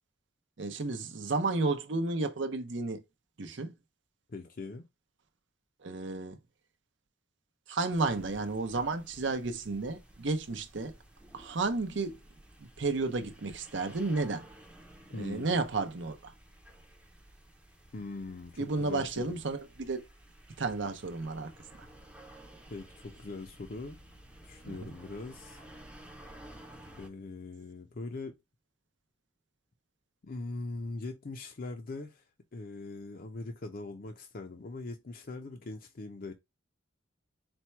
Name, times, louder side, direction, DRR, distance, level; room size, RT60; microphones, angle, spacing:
voice 1, 0.6-3.0 3.4-3.7 5.8-6.4 7.7-11.0 11.3-12.2 12.6-14.5 15.2-16.3 18.6-20.0 20.6-21.5 21.8-21.9 24.6-24.9, right 3 dB, 70° right, 0.7 m, -32 dB
voice 2, 4.3-4.8 15.1-15.6 17.9-19.4 22.7-24.0 24.4-25.6 27.0-28.4 30.2-32.2 32.5-36.3, left 3 dB, 45° left, 0.5 m, -41 dB
sound 1, 7.9-27.1, right 1 dB, 5° right, 0.6 m, -54 dB
4.3 x 2.2 x 4.3 m
head